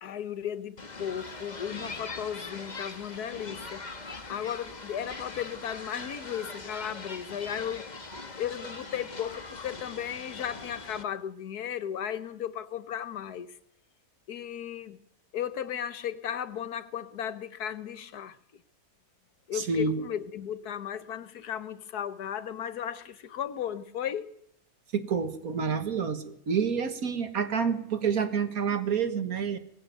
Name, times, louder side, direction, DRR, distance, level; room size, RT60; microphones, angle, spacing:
voice 1, 0.0-3.9 4.1-7.9 8.4-13.6 14.3-15.0 15.3-18.4 19.5-24.3, left 9 dB, 85° left, 1.6 m, -35 dB
sound 1, 0.8-11.0, left 3 dB, 30° left, 1.6 m, -41 dB
voice 2, 19.5-20.0 24.9-29.6, right 6 dB, 70° right, 2.1 m, -28 dB
20.5 x 15.5 x 9.2 m
omnidirectional pair, 1.6 m